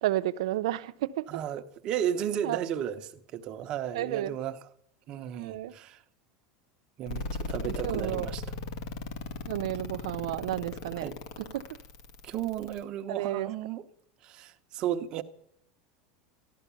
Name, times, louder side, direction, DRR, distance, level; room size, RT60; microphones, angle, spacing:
voice 1, 0.0-1.3 2.4-2.6 3.9-4.4 5.3-5.7 7.8-8.3 9.5-11.1 11.4-11.7 13.1-13.5, right 14 dB, 80° right, 0.7 m, -31 dB
voice 2, 1.3-4.6 5.1-6.0 7.0-8.4 11.0-11.2 12.2-13.8 14.2-15.2, right 10 dB, 30° right, 1.0 m, -34 dB
sound 1, 7.1-12.8, left 4 dB, 65° left, 2.1 m, -37 dB
14.5 x 12.5 x 7.0 m
supercardioid pair, 175°, 3 cm